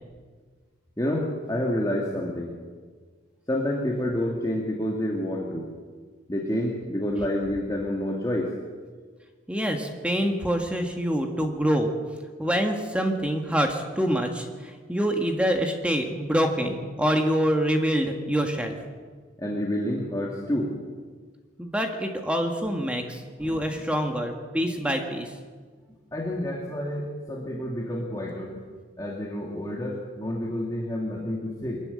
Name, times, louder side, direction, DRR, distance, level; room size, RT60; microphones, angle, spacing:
voice 1, 1.0-2.5 3.5-5.7 6.3-8.5 19.4-20.7 23.4-23.8 26.1-28.6 29.0-31.8, left 1 dB, 20° left, -2 dB, 2.2 m, -29 dB
voice 2, 9.5-11.9 12.4-18.7 21.6-25.3, equal, 5° right, 3 dB, 1.7 m, -26 dB
23.0 x 14.0 x 9.8 m, 1.5 s
head